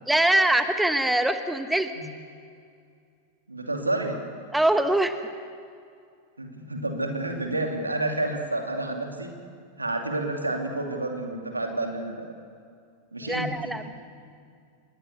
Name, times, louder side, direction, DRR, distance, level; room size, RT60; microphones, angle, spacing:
voice 1, 0.1-1.9 4.5-5.1 13.3-13.9, right 1 dB, 5° right, 9 dB, 1.1 m, -23 dB
voice 2, 3.5-4.2 6.4-9.3 9.8-12.3 13.1-13.9, right 2 dB, 80° right, 3 dB, 2.7 m, -30 dB
26.0 x 20.5 x 6.8 m, 2.3 s
figure-of-eight pair, 90°, 0 cm